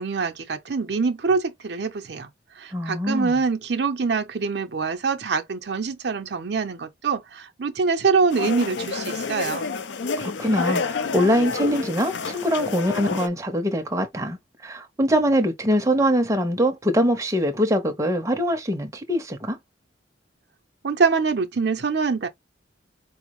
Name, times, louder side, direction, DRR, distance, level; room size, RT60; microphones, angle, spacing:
voice 1, 0.0-2.3 2.6-9.7 20.8-22.3, right 4 dB, 60° right, 0.5 m, -24 dB
voice 2, 2.7-3.4 10.2-14.4 14.6-19.6, equal, 15° right, 0.6 m, -23 dB
sound 1, 8.3-13.3, left 4 dB, 70° left, 0.5 m, -29 dB
4.4 x 2.0 x 3.0 m
head